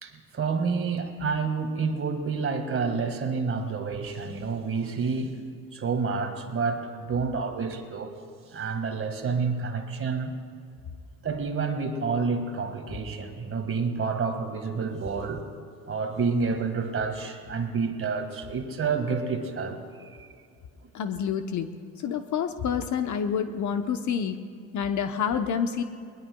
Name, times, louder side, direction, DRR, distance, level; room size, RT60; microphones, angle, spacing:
voice 1, 0.0-5.3 5.7-8.1 8.5-10.3 11.2-15.4 15.9-20.3, right 5 dB, 30° right, 6 dB, 1.8 m, -29 dB
voice 2, 20.9-21.7 22.0-24.4 24.7-25.8, left 7 dB, 40° left, 9 dB, 0.9 m, -28 dB
22.0 x 20.5 x 2.3 m, 2.4 s
hypercardioid pair, 70°, 43 cm